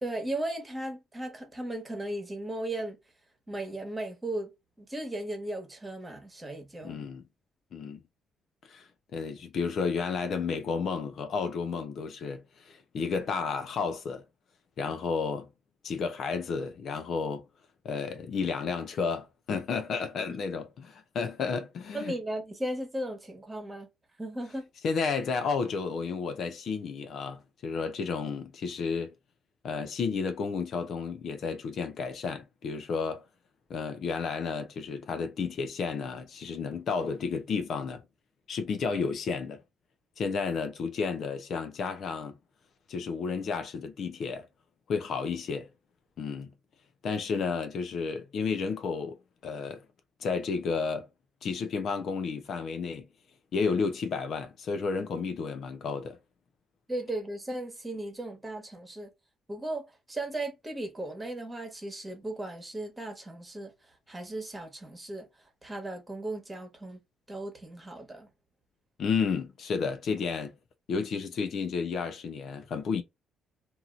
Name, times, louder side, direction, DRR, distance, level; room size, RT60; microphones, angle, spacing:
voice 1, 0.0-3.0 3.5-4.5 4.8-7.0 21.9-23.9 24.2-24.7 56.9-59.1 59.5-63.7 64.1-65.3 65.6-67.0 67.3-68.3, right 1 dB, 20° right, 1.3 m, -36 dB
voice 2, 6.8-7.3 7.7-8.0 8.7-8.9 9.1-14.2 14.8-15.5 15.8-17.4 17.8-22.1 24.8-29.1 29.6-33.2 33.7-38.0 38.5-39.6 40.2-42.4 42.9-44.5 44.9-45.7 46.2-46.5 47.0-49.2 49.4-49.8 50.2-51.1 51.4-53.1 53.5-56.2 69.0-70.5 70.9-73.0, left 5 dB, 60° left, 0.6 m, -32 dB
2.8 x 2.7 x 2.4 m
cardioid pair, 90°, 0 cm